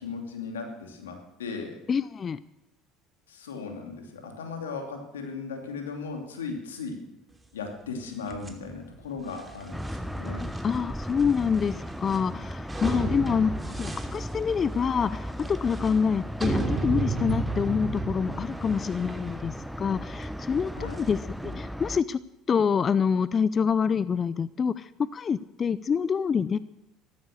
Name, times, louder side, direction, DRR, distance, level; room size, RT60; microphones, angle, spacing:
voice 1, 0.0-1.8 3.3-7.0 7.5-10.5 12.9-13.3 20.7-21.0, left 4 dB, 90° left, 3 dB, 2.7 m, -37 dB
voice 2, 1.9-2.4 10.6-20.7 21.0-22.2 22.5-26.6, left 6 dB, 40° left, 17 dB, 0.5 m, -26 dB
sound 1, 8.3-21.5, right 3 dB, 15° right, 2.8 m, -35 dB
sound 2, 9.7-22.0, equal, ahead, 0.9 m, -36 dB
14.5 x 13.0 x 6.7 m, 0.93 s
hypercardioid pair, 70°, 0 cm